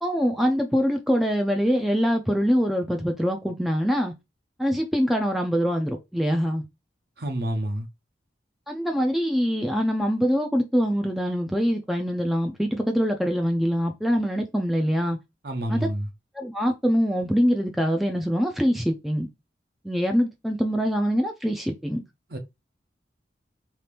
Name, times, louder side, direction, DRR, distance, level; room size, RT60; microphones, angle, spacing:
voice 1, 0.0-4.1 4.6-6.6 8.7-15.2 15.7-15.9 16.3-19.3 19.8-22.0, equal, ahead, 0.4 m, -24 dB
voice 2, 7.2-7.9 15.4-16.1 22.3-22.4, right 1 dB, 60° right, 0.8 m, -28 dB
2.8 x 2.5 x 3.3 m
head